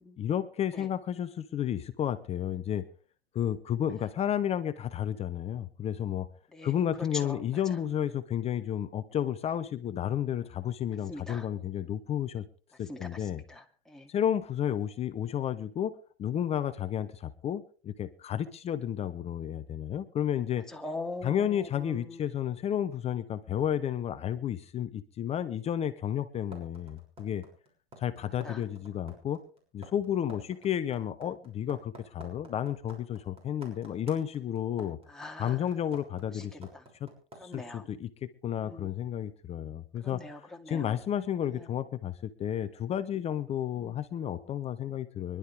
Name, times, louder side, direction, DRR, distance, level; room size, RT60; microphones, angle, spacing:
voice 1, 0.2-2.8 3.3-6.3 6.6-12.4 12.8-13.4 14.1-15.9 16.2-20.6 21.2-27.4 28.0-29.4 29.7-35.0 35.4-36.7 37.0-37.1 37.4-45.4, left 10 dB, 20° left, 11 dB, 0.9 m, -32 dB
voice 2, 11.1-11.5 12.9-13.0 13.5-14.1 20.7-21.4 21.8-22.2 28.4-28.6 35.1-35.6 36.7-36.8 37.4-37.9 38.6-38.9 40.0-40.9 43.8-43.9, left 2 dB, ahead, 1 dB, 2.5 m, -42 dB
sound 1, 26.5-37.6, right 1 dB, 20° right, 6.4 m, -49 dB
24.5 x 12.0 x 3.4 m, 0.40 s
hypercardioid pair, 120°, 30 cm